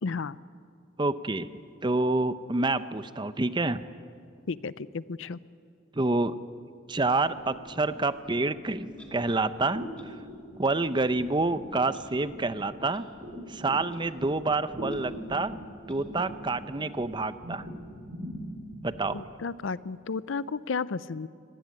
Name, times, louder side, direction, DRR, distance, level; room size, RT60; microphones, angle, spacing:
voice 1, 0.0-0.4 4.5-5.4 19.1-21.3, left 4 dB, 70° left, 18 dB, 0.5 m, -33 dB
voice 2, 1.0-1.5 1.8-3.8 5.9-6.4 6.9-9.8 10.6-13.1 13.5-15.5 15.9-17.6 18.8-19.2, right 2 dB, 25° right, 13 dB, 0.7 m, -28 dB
sound 1, 7.2-19.2, equal, 50° right, 6.6 m, -42 dB
Clock, 9.0-9.1 10.0-10.1 10.9-11.1 11.9-12.0 12.9-13.0 13.9-14.0 14.9-15.0 15.9-16.0, left 1 dB, 5° left, 2.7 m, -54 dB
24.5 x 18.5 x 9.5 m, 2.3 s
head